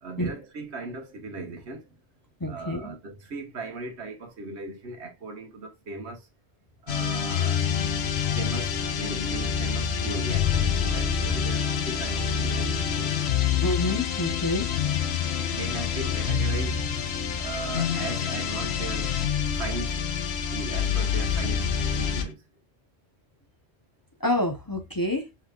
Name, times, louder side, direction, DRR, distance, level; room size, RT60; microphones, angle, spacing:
voice 1, 0.0-1.8 2.5-6.2 6.9-7.7 8.3-13.2 15.4-16.8 17.4-19.2 19.6-20.0 20.5-22.4, right 3 dB, 75° right, 1.4 m, -37 dB
voice 2, 2.4-2.9 13.6-14.7 24.2-25.3, left 1 dB, 20° left, 0.8 m, -27 dB
sound 1, 6.9-22.3, left 7 dB, 70° left, 1.0 m, -27 dB
5.5 x 3.4 x 2.3 m
omnidirectional pair, 1.1 m